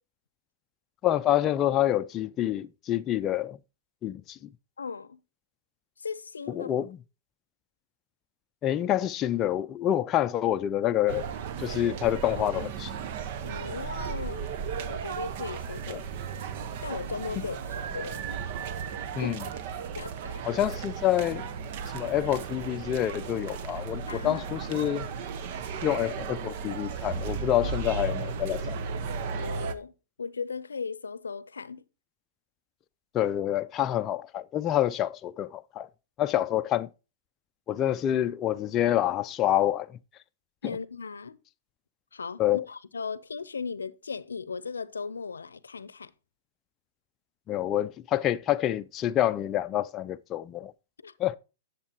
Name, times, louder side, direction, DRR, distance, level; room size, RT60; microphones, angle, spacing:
voice 1, 1.0-3.6 4.0-4.4 6.5-7.0 8.6-11.3 11.6-12.9 15.9-16.0 19.2-19.4 20.4-21.5 21.9-25.1 25.8-28.8 33.1-35.9 36.2-36.9 37.7-39.9 42.4-42.6 47.5-50.7 51.2-51.4, left 12 dB, 30° left, 0.4 m, -27 dB
voice 2, 4.8-5.2 6.0-6.7 13.4-14.5 14.9-16.1 16.8-18.2 19.1-19.5 19.9-20.4 24.1-24.4 29.3-29.9 30.2-31.8 40.6-41.4 42.1-46.1 51.0-51.1, left 5 dB, 90° left, 0.6 m, -37 dB
sound 1, 11.1-29.8, right 6 dB, 55° right, 1.1 m, -35 dB
11.0 x 7.4 x 2.9 m
hypercardioid pair, 110°, 0 cm